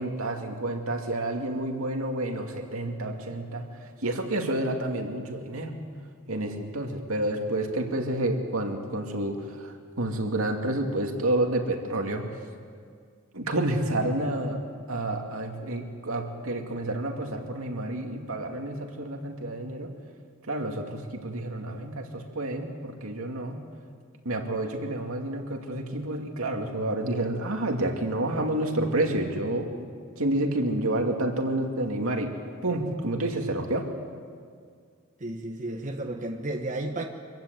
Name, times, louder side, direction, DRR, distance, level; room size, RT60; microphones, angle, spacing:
voice 1, 0.0-3.7 4.0-5.8 6.3-12.3 13.3-19.9 20.5-23.6 24.2-29.9 30.2-32.3 32.6-33.9, right 1 dB, 85° right, 3 dB, 2.5 m, -29 dB
voice 2, 35.2-37.1, right 2 dB, 40° right, 3 dB, 1.3 m, -32 dB
25.0 x 15.0 x 9.2 m, 2.1 s
head